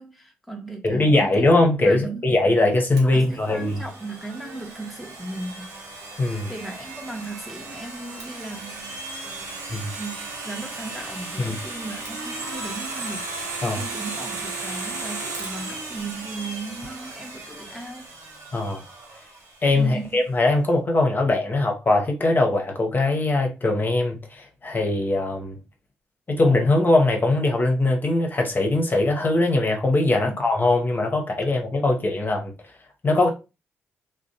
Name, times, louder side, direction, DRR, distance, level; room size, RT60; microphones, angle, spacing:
voice 1, 0.0-1.5 1.8-2.3 3.0-5.7 6.5-9.6 9.9-18.1 19.7-20.2 30.2-30.4, right 2 dB, ahead, 0.7 m, -37 dB
voice 2, 0.8-3.8 6.2-6.5 9.7-9.9 11.4-11.6 13.6-13.8 18.5-18.8 19.6-25.6 26.3-32.5 33.0-33.3, left 2 dB, 35° left, 0.8 m, -21 dB
Domestic sounds home sounds, 3.0-19.7, right 3 dB, 75° right, 0.8 m, -36 dB
2.5 x 2.0 x 2.7 m
hypercardioid pair, 40°, 6 cm